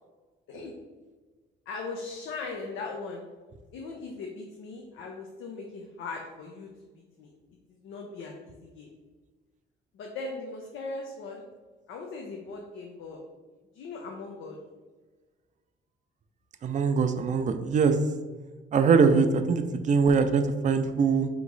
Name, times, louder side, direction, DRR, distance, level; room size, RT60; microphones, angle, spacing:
voice 1, 1.7-3.3 3.7-6.7 7.2-7.3 7.7-8.9 9.9-11.5 11.9-13.2 13.7-14.6, left 3 dB, 85° left, 1 dB, 0.5 m, -39 dB
voice 2, 16.6-17.9 18.7-21.3, right 5 dB, 40° right, 8 dB, 0.4 m, -22 dB
3.5 x 3.0 x 3.9 m, 1.3 s
cardioid pair, 90°, 20 cm